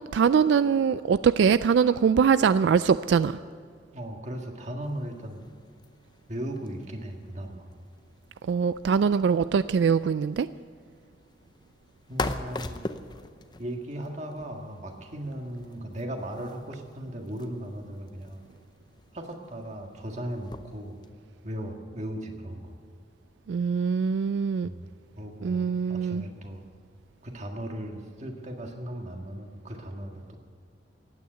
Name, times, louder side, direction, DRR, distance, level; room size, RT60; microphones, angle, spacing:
voice 1, 0.1-3.4 8.5-10.5 23.5-24.7 25.4-26.2, right 6 dB, 80° right, 14 dB, 0.3 m, -23 dB
voice 2, 3.9-5.4 6.3-7.7 12.1-12.8 13.6-18.4 19.1-21.0 21.4-22.8 24.6-24.9 25.2-26.6 27.2-30.4, right 1 dB, 40° right, 3 dB, 1.8 m, -37 dB
sound 1, 4.8-21.1, left 2 dB, 25° left, 0.6 m, -43 dB
15.5 x 9.4 x 9.1 m, 2.1 s
head